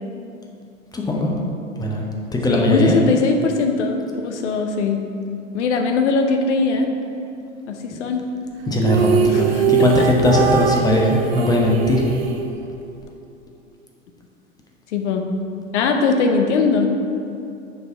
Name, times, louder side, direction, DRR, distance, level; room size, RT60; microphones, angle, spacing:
voice 1, 0.9-1.3 1.8-3.0 7.9-8.0 8.7-12.0, left 1 dB, 10° left, -1 dB, 0.7 m, -19 dB
voice 2, 2.5-5.0 5.5-6.9 7.7-8.2 9.3-9.6 14.9-15.2 15.7-17.0, left 4 dB, 60° left, 4 dB, 0.8 m, -20 dB
sound 1, 8.8-13.1, right 6 dB, 50° right, 0.7 m, -21 dB
6.4 x 4.5 x 4.5 m, 2.6 s
figure-of-eight pair, 95°, 40 cm